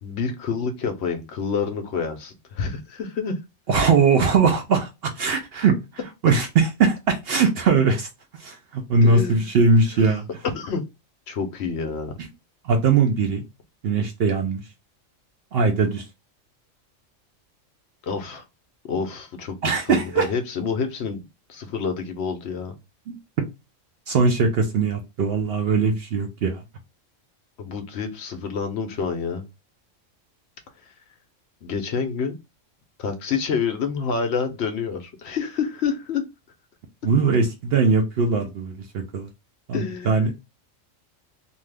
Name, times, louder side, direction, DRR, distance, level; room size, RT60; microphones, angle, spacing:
voice 1, 0.0-3.4 9.0-9.4 10.1-10.2 10.4-10.8 11.3-12.1 18.0-18.4 18.9-19.6 19.9-22.8 27.6-29.4 30.8-30.9 31.6-32.3 33.0-36.2 39.7-40.2, left 5 dB, 65° left, 6 dB, 0.8 m, -28 dB
voice 2, 3.7-5.7 6.2-8.1 8.4-10.2 12.6-13.4 13.8-14.6 15.5-16.0 19.6-20.3 23.1-23.2 24.1-26.6 37.0-39.3 39.7-40.3, right 4 dB, 60° right, 5 dB, 0.7 m, -20 dB
2.6 x 2.4 x 3.3 m, 0.24 s
omnidirectional pair, 1.3 m